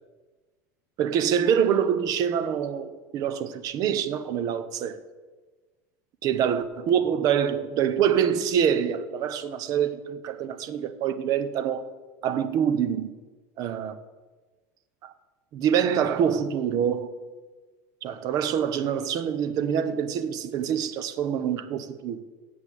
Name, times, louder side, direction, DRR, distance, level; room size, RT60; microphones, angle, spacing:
voice 1, 1.0-5.0 6.2-11.9 12.2-13.1 13.6-14.0 15.0-15.1 15.5-17.1 18.0-22.2, right 8 dB, 45° right, 0.9 m, -25 dB
8.1 x 7.4 x 8.3 m
supercardioid pair, 140°, 8 cm